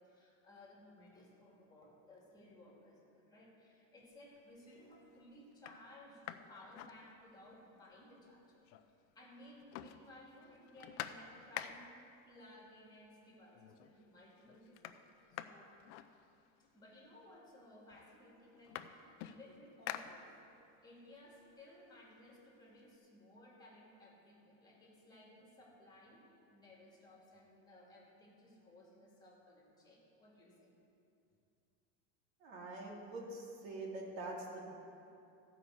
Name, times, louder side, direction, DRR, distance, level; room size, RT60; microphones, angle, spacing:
voice 1, 0.0-15.7 16.6-20.3 20.8-26.2 26.5-30.7, left 1 dB, 10° left, -3 dB, 2.7 m, -59 dB
sound 1, 4.1-4.6 5.1-5.2 5.5-7.6 7.9-8.0 8.3-9.1 9.4-12.1 13.1-13.2 13.5-14.0 14.3-16.7 17.5-17.6 17.9-20.7 21.1-22.9, left 11 dB, 60° left, 0.7 m, -49 dB
voice 2, 32.4-34.7, right 2 dB, 65° right, -2 dB, 2.9 m, -45 dB
14.5 x 5.8 x 7.8 m, 2.6 s
supercardioid pair, 145°, 37 cm